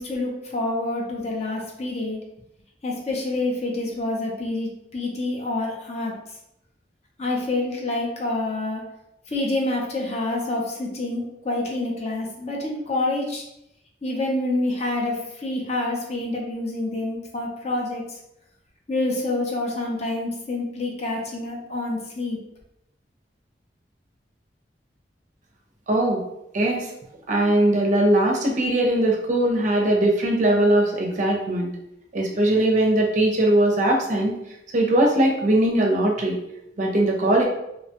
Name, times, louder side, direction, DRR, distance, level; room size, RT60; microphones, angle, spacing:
voice 1, 0.0-2.2 2.8-6.1 7.2-8.8 9.3-13.4 14.0-18.2 18.9-22.4, left 2 dB, 40° left, -1 dB, 0.6 m, -27 dB
voice 2, 25.9-26.2 26.5-26.9 27.3-31.7 32.1-34.3 34.7-36.4 36.8-37.4, right 1 dB, 45° right, 0 dB, 0.5 m, -20 dB
2.8 x 2.2 x 2.8 m, 0.83 s
head